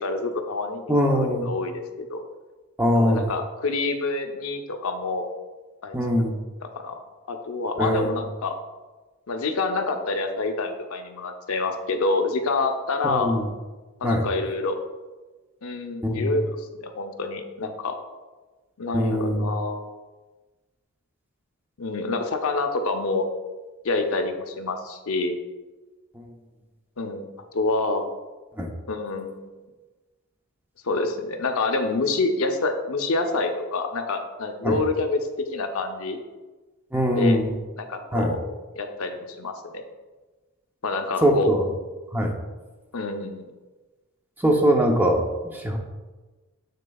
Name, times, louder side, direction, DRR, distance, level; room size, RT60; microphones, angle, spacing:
voice 1, 0.0-1.8 2.1-2.2 2.9-5.3 5.8-5.9 6.6-7.0 7.3-8.5 9.3-13.3 14.0-14.8 15.6-17.9 18.8-19.9 21.8-23.3 23.8-25.4 27.0-27.3 27.5-28.0 28.9-29.5 30.8-35.2 35.5-36.2 37.1-37.4 37.8-38.4 38.8-39.8 40.8-41.5 42.9-43.5, left 3 dB, 70° left, 5 dB, 0.6 m, -27 dB
voice 2, 0.9-1.5 2.8-3.3 5.9-6.3 7.8-8.2 13.0-13.5 14.0-14.2 16.0-16.3 18.9-19.4 26.2-26.3 28.6-28.7 34.6-34.8 36.9-37.5 38.1-38.3 41.2-41.7 42.1-42.3 44.4-45.8, equal, 10° right, 1 dB, 0.6 m, -22 dB
7.5 x 6.5 x 2.3 m, 1.2 s
head